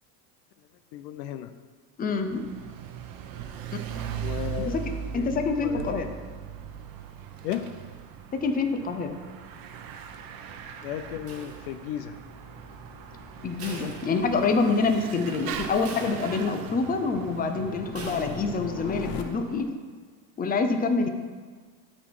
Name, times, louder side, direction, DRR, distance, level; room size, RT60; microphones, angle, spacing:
voice 1, 0.9-1.5 4.2-4.8 5.1-5.3 5.6-6.0 7.4-7.7 10.8-12.2, left 11 dB, 75° left, 11 dB, 0.7 m, -34 dB
voice 2, 2.0-2.4 4.7-4.8 5.1-6.1 8.3-9.2 13.4-19.7 20.4-21.1, left 4 dB, 20° left, 6 dB, 0.7 m, -26 dB
Bicycle / Mechanisms, 2.1-19.7, right 8 dB, 45° right, 0.9 m, -40 dB
sound 1, 8.1-19.2, left 7 dB, 45° left, 0.9 m, -43 dB
sound 2, 11.3-12.1 13.6-14.7 15.1-15.2 15.9-16.7 17.9-18.7, right 2 dB, 30° right, 1.8 m, -43 dB
13.0 x 4.3 x 4.8 m, 1.5 s
supercardioid pair, 120°, 47 cm